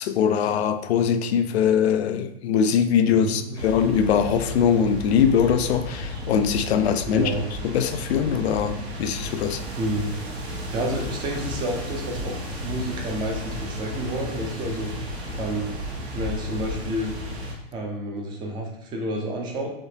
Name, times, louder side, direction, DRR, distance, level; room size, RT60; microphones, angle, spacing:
voice 1, 0.0-7.3 7.6-9.6, left 7 dB, 80° left, 0.5 m, -22 dB
voice 2, 3.2-3.6 7.1-7.4 9.8-10.1 10.7-14.9 15.4-15.7 16.1-17.1 17.7-19.7, right 1 dB, 15° right, 0.4 m, -29 dB
sound 1, 3.5-17.5, left 1 dB, 90° right, 1.1 m, -33 dB
3.4 x 2.7 x 2.7 m
hypercardioid pair, 140°, 31 cm